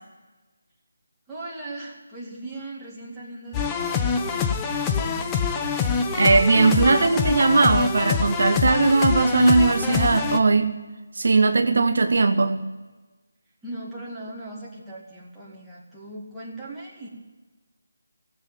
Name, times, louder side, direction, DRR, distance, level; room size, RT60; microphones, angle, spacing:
voice 1, 1.3-5.2 13.6-17.1, right 2 dB, 5° right, -8 dB, 2.4 m, -39 dB
sound 1, 3.5-10.4, left 6 dB, 15° left, 0.7 m, -25 dB
voice 2, 6.1-10.7 11.1-12.7, right 3 dB, 60° right, 8 dB, 0.8 m, -19 dB
16.0 x 7.7 x 9.1 m, 1.2 s
figure-of-eight pair, 165°, 0 cm